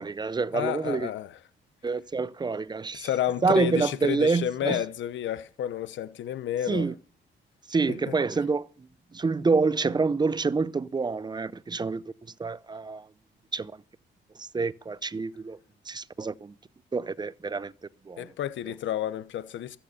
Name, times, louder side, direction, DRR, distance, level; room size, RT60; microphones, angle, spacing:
voice 1, 0.0-1.1 1.8-3.1 3.4-4.8 6.7-6.9 7.7-8.7 9.1-12.0 12.4-13.0 13.5-13.7 14.4-15.6 15.9-16.5 16.9-17.7 18.1-18.3, right 4 dB, 20° right, 0.6 m, -27 dB
voice 2, 0.5-1.4 2.9-6.9 8.1-8.2 18.2-19.8, left 11 dB, 70° left, 1.0 m, -31 dB
14.0 x 8.9 x 6.7 m
cardioid pair, 90°, 20 cm